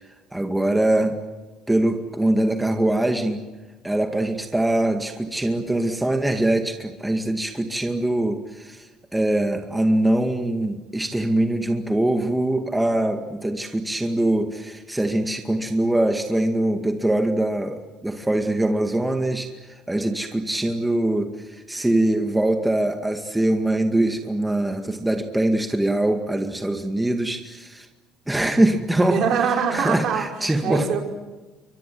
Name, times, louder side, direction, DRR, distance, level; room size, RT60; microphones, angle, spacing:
voice 1, 0.3-1.2 1.7-3.5 3.8-27.9 28.3-29.2 29.7-31.0, right 1 dB, 10° right, 5 dB, 2.1 m, -23 dB
voice 2, 29.0-31.0, right 6 dB, 60° right, 3 dB, 5.2 m, -24 dB
29.0 x 24.5 x 7.9 m, 1.2 s
cardioid pair, 115°, 0 cm